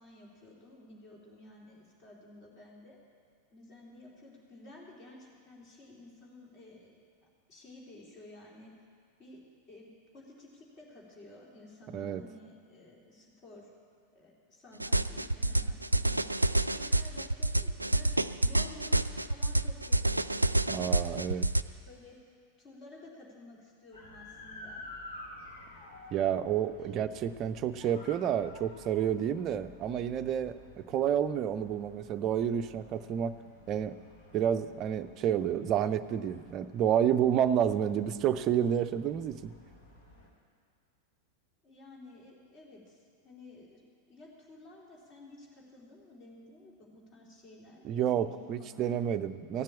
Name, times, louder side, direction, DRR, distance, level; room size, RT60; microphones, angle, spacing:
voice 1, 0.0-3.0 3.5-7.0 7.5-8.7 9.2-9.9 10.1-13.7 14.1-16.4 16.7-21.3 21.9-24.9 26.8-27.1 41.6-43.8 44.1-49.0, left 2 dB, 35° left, -3 dB, 3.3 m, -53 dB
sound 1, 14.8-21.6, right 2 dB, 85° right, 0.3 m, -28 dB
voice 2, 20.7-21.5 26.1-33.3 33.7-34.0 34.3-39.5 47.8-49.6, right 9 dB, 35° right, 11 dB, 0.5 m, -30 dB
sound 2, 23.9-40.3, left 2 dB, 70° left, 3.0 m, -52 dB
16.0 x 7.5 x 8.4 m, 2.1 s
figure-of-eight pair, 90°, 0 cm